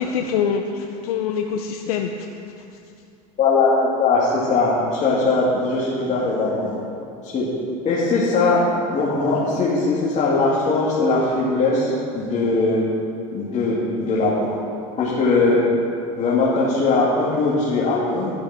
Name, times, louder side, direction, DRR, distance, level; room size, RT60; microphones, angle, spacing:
voice 1, 0.0-2.1 2.6-2.7, left 7 dB, 85° left, 4 dB, 0.7 m, -24 dB
voice 2, 3.4-3.7 4.0-6.7 7.2-7.5 7.8-12.8 13.3-14.7 15.0-15.6 16.2-18.3, left 3 dB, 40° left, -7 dB, 2.5 m, -20 dB
12.0 x 10.0 x 4.4 m, 2.6 s
supercardioid pair, 110°, 18 cm